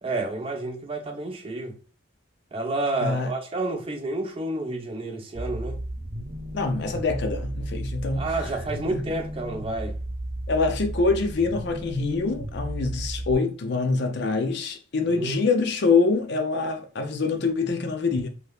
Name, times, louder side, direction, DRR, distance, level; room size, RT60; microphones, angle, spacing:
voice 1, 0.0-1.7 2.5-5.8 8.1-9.9 15.1-15.4, right 2 dB, 25° right, 0.4 m, -30 dB
voice 2, 3.0-3.3 6.5-8.5 8.9-9.0 10.5-18.3, left 4 dB, 55° left, 0.5 m, -25 dB
sound 1, 5.3-13.3, right 1 dB, 45° right, 0.8 m, -34 dB
2.8 x 2.8 x 3.3 m
head